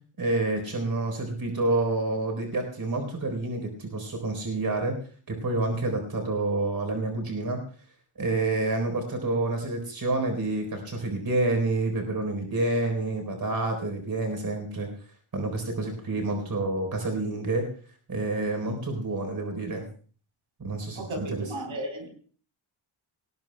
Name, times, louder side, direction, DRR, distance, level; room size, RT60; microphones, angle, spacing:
voice 1, 0.2-5.0 5.3-7.6 8.2-14.9 15.3-17.7 18.1-19.9 20.6-21.5, right 2 dB, 45° right, 4 dB, 4.0 m, -28 dB
voice 2, 21.0-22.1, right 1 dB, 70° right, 4 dB, 3.9 m, -34 dB
23.5 x 19.0 x 2.2 m, 0.42 s
wide cardioid pair, 170°, 50 cm